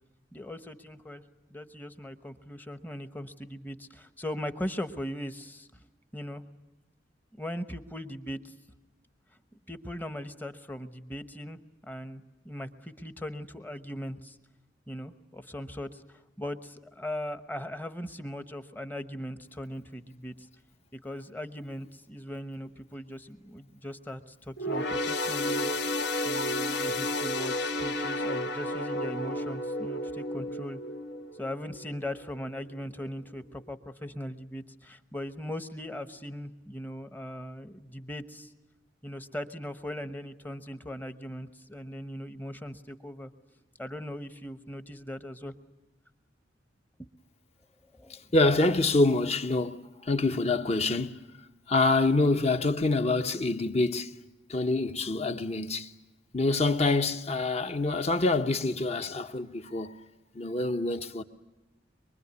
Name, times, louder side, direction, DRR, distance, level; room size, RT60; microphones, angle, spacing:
voice 1, 0.3-1.2 1.5-5.7 6.1-6.4 7.4-8.5 9.7-14.4 14.9-20.5 21.0-25.7 26.2-30.8 31.4-38.5 39.0-43.3 43.8-45.5 47.9-48.2, left 1 dB, 10° left, 1.0 m, -39 dB
sound 1, 24.6-32.3 32.7-32.9 33.7-33.8, left 1 dB, 75° left, 2.7 m, -32 dB
voice 2, 48.3-51.2 51.7-54.1 54.5-55.9 56.3-60.0 60.3-61.2, left 2 dB, 35° left, 1.0 m, -26 dB
24.0 x 24.0 x 9.5 m
head